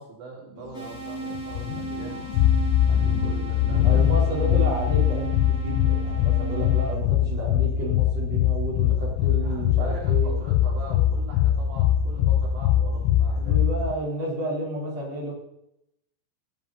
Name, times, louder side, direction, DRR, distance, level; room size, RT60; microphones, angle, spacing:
voice 1, 0.0-2.2 2.9-4.2 9.4-13.6, right 3 dB, 85° right, -2 dB, 6.1 m, -41 dB
sound 1, 0.7-6.9, right 3 dB, 20° left, 2.8 m, -36 dB
sound 2, 1.3-13.9, left 10 dB, 90° left, 3.2 m, -22 dB
voice 2, 3.8-10.3 13.4-15.3, right 1 dB, 35° right, -3 dB, 5.5 m, -31 dB
16.0 x 14.0 x 4.5 m, 0.80 s
omnidirectional pair, 5.5 m